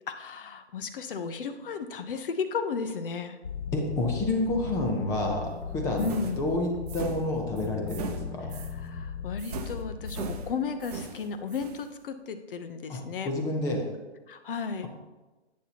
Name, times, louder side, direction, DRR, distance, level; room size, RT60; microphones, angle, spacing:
voice 1, 0.1-3.4 6.0-6.5 8.5-13.3 14.3-14.9, left 5 dB, 50° left, 10 dB, 0.9 m, -34 dB
sound 1, 3.4-10.5, left 7 dB, 75° left, 0.7 m, -37 dB
voice 2, 3.7-6.1 6.4-8.5 12.9-13.9, left 2 dB, 10° left, 2 dB, 0.6 m, -29 dB
sound 2, 6.0-8.8 9.4-11.9, right 5 dB, 35° right, 0.8 m, -40 dB
11.0 x 8.6 x 2.9 m, 1.1 s
hypercardioid pair, 145°, 35 cm